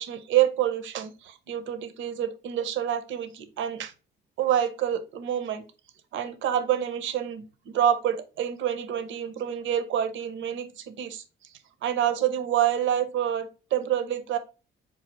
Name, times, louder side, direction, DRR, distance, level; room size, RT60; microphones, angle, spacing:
voice 1, 0.0-3.9 4.4-5.6 6.1-11.2 11.8-14.4, right 10 dB, 75° right, 10 dB, 0.7 m, -27 dB
4.7 x 2.4 x 4.1 m, 0.32 s
cardioid pair, 90°, 20 cm